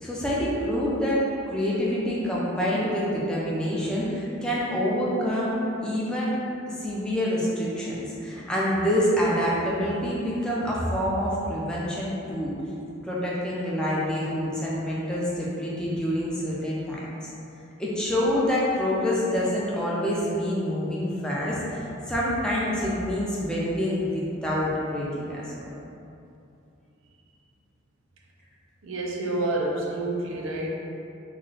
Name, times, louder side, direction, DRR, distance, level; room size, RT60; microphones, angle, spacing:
voice 1, 0.0-6.4 6.8-12.6 13.0-17.1 17.8-25.7, equal, 5° left, -7 dB, 0.5 m, -27 dB
voice 2, 28.8-30.7, right 2 dB, 80° right, -1 dB, 0.5 m, -28 dB
3.1 x 2.5 x 3.8 m, 2.7 s
head